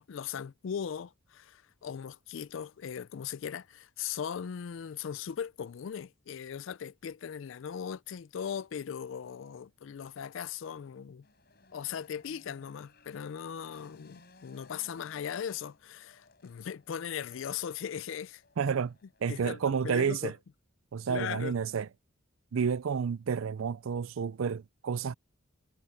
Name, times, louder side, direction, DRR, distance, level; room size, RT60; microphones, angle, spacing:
voice 1, 0.0-11.3 11.7-18.4 19.3-20.3 21.1-21.5, left 8 dB, 70° left, 0.4 m, -39 dB
sound 1, 11.2-19.3, left 3 dB, 50° left, 5.7 m, -60 dB
voice 2, 18.6-19.0 19.2-20.3 20.9-21.9 22.5-25.1, right 6 dB, 80° right, 0.4 m, -30 dB
head